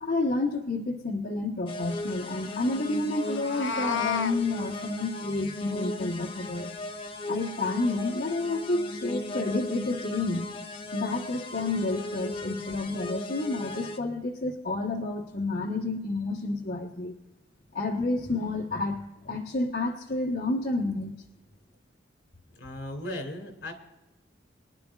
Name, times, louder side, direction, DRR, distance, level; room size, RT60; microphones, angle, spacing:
voice 1, 0.0-6.7 7.3-10.5 10.9-17.1 17.7-21.2, left 2 dB, 55° left, -3 dB, 1.3 m, -30 dB
sound 1, 1.7-14.0, left 2 dB, 30° left, 0.9 m, -37 dB
Meow, 3.3-4.4, left 5 dB, 90° left, 0.6 m, -30 dB
voice 2, 22.5-23.7, left 1 dB, 75° left, 4 dB, 2.6 m, -37 dB
23.5 x 11.0 x 2.5 m, 0.99 s
head